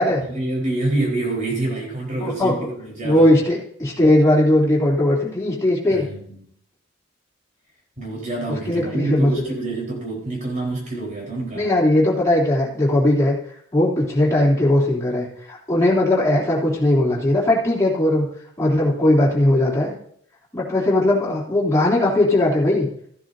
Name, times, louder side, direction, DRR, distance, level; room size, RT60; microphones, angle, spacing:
voice 1, 0.3-3.3 5.9-6.5 8.0-11.7, right 2 dB, 40° right, -2 dB, 4.3 m, -27 dB
voice 2, 2.2-2.5 3.0-6.0 8.5-9.5 11.5-13.3 13.7-18.3 18.6-19.9 20.5-22.9, left 1 dB, 15° left, -5 dB, 3.3 m, -18 dB
15.0 x 10.5 x 2.7 m, 0.65 s
head